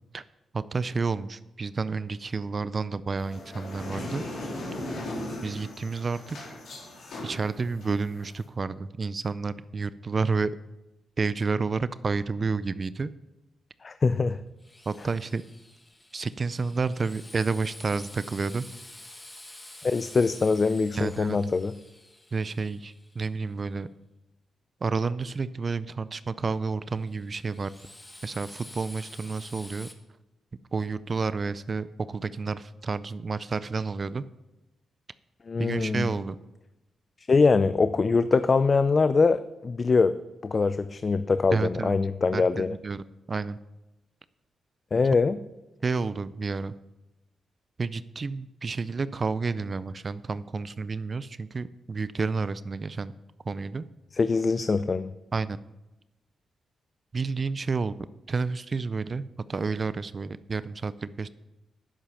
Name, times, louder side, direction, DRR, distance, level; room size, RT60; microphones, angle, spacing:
voice 1, 0.5-4.2 5.4-6.4 7.2-10.5 11.2-13.1 14.9-15.4 16.1-18.7 20.9-21.4 22.3-23.9 24.8-27.7 28.2-29.9 30.7-34.2 35.6-36.4 41.5-41.9 42.3-43.0 43.3-43.6 45.8-46.7 47.8-53.1 53.5-53.9 55.3-55.6 57.1-57.9 58.3-61.3, right 4 dB, 40° right, 16 dB, 0.4 m, -30 dB
sound 1, 3.2-8.4, left 1 dB, 75° left, 3.2 m, -38 dB
voice 2, 13.8-14.4 19.8-21.7 35.5-36.1 37.3-40.1 40.4-42.7 44.9-45.4 54.1-55.1, left 4 dB, 40° left, 12 dB, 0.4 m, -23 dB
Drill, 14.6-23.5 26.9-29.9, left 1 dB, 15° left, 1.3 m, -48 dB
10.0 x 7.5 x 5.6 m, 0.97 s
cardioid pair, 75°, 0 cm